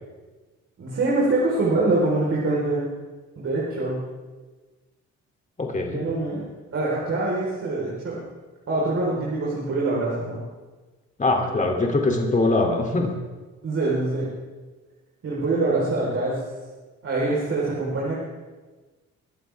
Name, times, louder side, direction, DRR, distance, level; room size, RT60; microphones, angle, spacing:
voice 1, 0.8-2.9 3.4-4.0 5.9-6.4 6.7-8.2 8.7-10.4 13.6-14.3 15.2-16.4 17.0-18.1, right 2 dB, 50° right, -6 dB, 4.4 m, -24 dB
voice 2, 5.6-6.0 11.2-13.1, left 2 dB, 25° left, 1 dB, 2.9 m, -22 dB
23.5 x 11.5 x 3.5 m, 1.3 s
cardioid pair, 90°, 30 cm